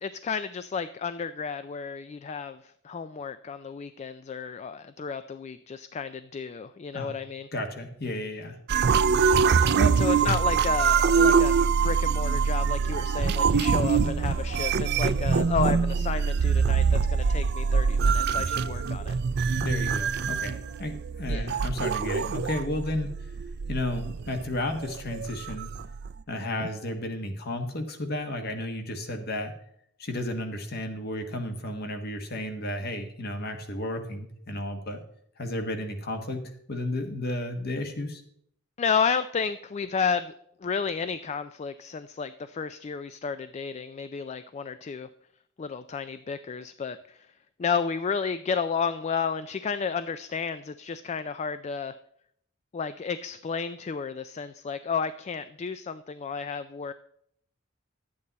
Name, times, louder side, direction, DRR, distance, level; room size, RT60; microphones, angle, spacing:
voice 1, 0.0-7.5 10.0-19.2 21.3-21.6 26.6-26.7 38.8-40.3 40.6-45.1 45.6-47.3 47.6-51.9 52.7-56.9, left 6 dB, 35° left, 13 dB, 0.3 m, -32 dB
voice 2, 7.5-8.6 9.7-10.0 19.6-23.2 23.7-25.7 26.3-29.5 30.0-35.0 35.4-38.2, left 1 dB, 50° left, 6 dB, 1.4 m, -32 dB
sound 1, 8.7-26.2, right 6 dB, 55° right, 0.5 m, -24 dB
11.5 x 8.7 x 4.1 m, 0.69 s
head